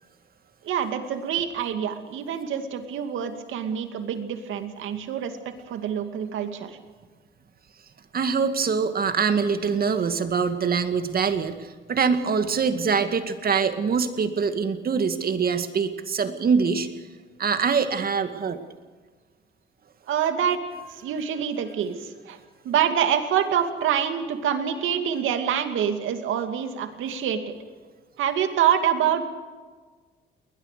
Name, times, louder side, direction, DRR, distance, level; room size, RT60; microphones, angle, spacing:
voice 1, 0.6-5.4 5.7-6.7 20.1-20.6 20.9-22.4 22.6-27.5 28.2-29.2, right 8 dB, 80° right, 7 dB, 2.4 m, -26 dB
voice 2, 8.1-16.9 17.4-18.6, right 5 dB, 50° right, 8 dB, 2.1 m, -24 dB
21.0 x 20.5 x 6.8 m, 1.4 s
cardioid pair, 90°, 20 cm